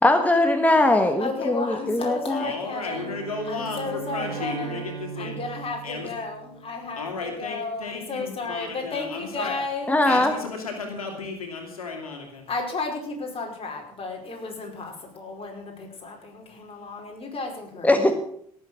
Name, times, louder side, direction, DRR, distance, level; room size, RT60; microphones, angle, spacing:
voice 1, 0.0-2.4 9.9-10.3 17.8-18.2, left 2 dB, 10° left, 7 dB, 1.5 m, -20 dB
voice 2, 1.2-4.9 5.2-10.0 12.5-17.9, left 3 dB, 30° left, 1 dB, 5.1 m, -33 dB
voice 3, 2.3-5.3 5.8-6.1 7.0-9.6 10.1-12.5, left 4 dB, 90° left, 2 dB, 2.6 m, -34 dB
Bowed string instrument, 2.8-7.0, right 9 dB, 70° right, 1.4 m, -39 dB
17.5 x 7.8 x 6.4 m, 0.65 s
hypercardioid pair, 65°, 18 cm